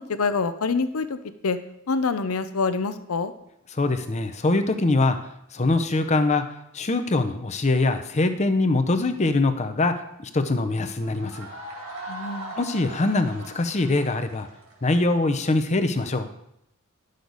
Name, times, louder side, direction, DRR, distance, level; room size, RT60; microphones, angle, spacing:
voice 1, 0.0-1.6 1.9-3.3 12.1-12.5, left 4 dB, 75° left, 11 dB, 0.6 m, -26 dB
voice 2, 3.7-5.2 5.5-6.4 6.7-9.9 10.3-11.5 12.6-14.5 14.8-16.3, left 2 dB, 30° left, 8 dB, 0.7 m, -23 dB
sound 1, 11.0-15.7, right 1 dB, 65° right, 2.3 m, -40 dB
11.0 x 6.5 x 4.0 m, 0.79 s
head